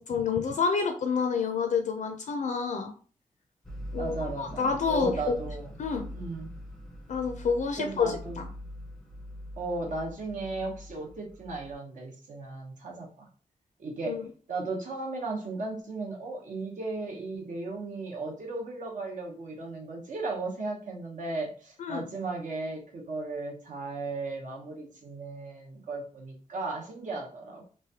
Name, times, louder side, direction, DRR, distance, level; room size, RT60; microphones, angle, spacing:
voice 1, 0.1-2.9 3.9-5.3 5.8-6.1 7.1-8.1 14.0-14.3 21.8-22.0, left 5 dB, 65° left, 5 dB, 0.4 m, -28 dB
sound 1, 3.6-11.7, left 1 dB, 5° left, 0.5 m, -43 dB
voice 2, 3.9-5.7 6.1-6.5 7.8-8.4 9.6-13.3 13.8-14.2 14.5-27.7, right 3 dB, 65° right, 0 dB, 0.9 m, -36 dB
3.1 x 2.2 x 2.7 m, 0.40 s
wide cardioid pair, 155°, 14 cm